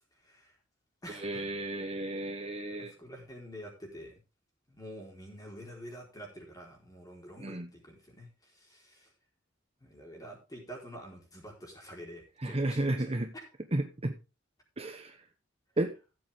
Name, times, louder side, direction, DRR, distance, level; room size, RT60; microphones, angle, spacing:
voice 1, 0.2-0.6 1.0-1.4 2.8-4.2 4.7-9.1 9.8-13.1, equal, 20° left, 0 dB, 4.3 m, -48 dB
voice 2, 1.1-2.9 7.4-7.7 12.4-13.3 13.7-14.2 14.8-15.2 15.8-16.0, right 1 dB, 30° right, 6 dB, 1.0 m, -33 dB
15.5 x 7.9 x 3.6 m, 0.30 s
head